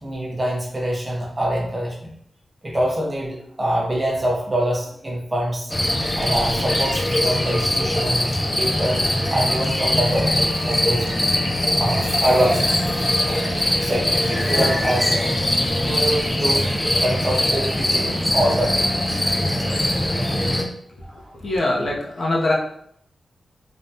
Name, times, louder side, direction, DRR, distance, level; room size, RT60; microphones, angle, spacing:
voice 1, 0.0-2.1 2.6-5.7 6.2-8.3 8.6-11.1 11.7-12.9 13.2-13.5 13.8-15.4 15.8-16.7 17.0-19.2 21.0-21.2, right 1 dB, 20° right, -2 dB, 0.6 m, -25 dB
sound 1, 5.7-20.6, left 1 dB, 10° left, 0.3 m, -22 dB
sound 2, 11.5-14.0, right 1 dB, 40° right, 1.1 m, -41 dB
voice 2, 21.3-22.5, left 2 dB, 50° left, -3 dB, 0.6 m, -22 dB
3.3 x 2.2 x 2.6 m, 0.69 s
wide cardioid pair, 180°, 0 cm